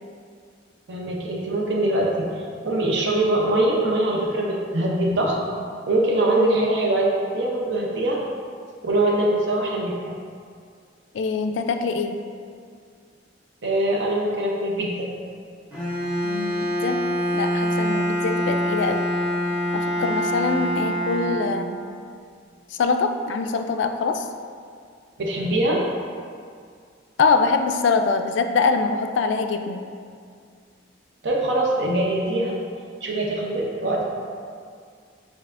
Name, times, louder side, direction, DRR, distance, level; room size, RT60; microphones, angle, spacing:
voice 1, 0.9-2.3 2.6-5.4 5.9-8.2 8.8-9.9 13.6-15.1 25.2-25.8 31.2-32.6 33.0-34.0, right 1 dB, 60° right, -2 dB, 0.6 m, -22 dB
voice 2, 11.1-12.2 16.2-17.0 17.3-19.1 19.7-21.8 22.7-24.2 27.2-29.8, left 4 dB, 65° left, 7 dB, 0.3 m, -24 dB
Bowed string instrument, 15.7-21.9, equal, 10° right, 0.9 m, -25 dB
5.5 x 4.0 x 2.4 m, 2.2 s
head